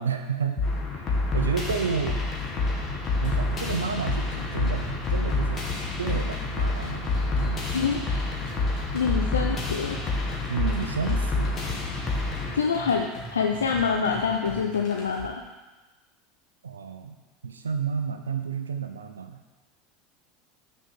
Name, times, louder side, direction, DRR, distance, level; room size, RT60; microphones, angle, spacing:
voice 1, 0.0-2.2 3.2-5.6 6.0-7.6 10.5-11.5 16.6-17.1 17.4-19.4, right 6 dB, 85° right, 6 dB, 0.5 m, -31 dB
sound 1, 0.6-12.6, left 3 dB, 30° left, 2.1 m, -28 dB
sound 2, 3.2-15.2, equal, 55° left, 2.5 m, -42 dB
voice 2, 7.7-8.2 8.9-10.0 12.5-15.3, left 6 dB, 85° left, 2 dB, 0.6 m, -26 dB
6.4 x 5.5 x 6.5 m, 1.2 s
hypercardioid pair, 80°, 0 cm